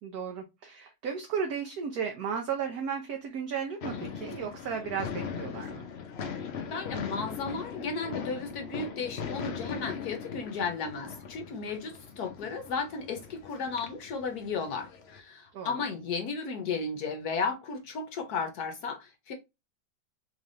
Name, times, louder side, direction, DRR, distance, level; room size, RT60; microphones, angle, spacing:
voice 1, 0.0-5.9 15.5-15.8, right 6 dB, 65° right, 1.1 m, -34 dB
sound 1, 3.8-15.2, left 6 dB, 90° left, 0.5 m, -40 dB
voice 2, 6.7-19.3, left 4 dB, 65° left, 1.1 m, -34 dB
4.0 x 3.3 x 2.5 m
omnidirectional pair, 2.1 m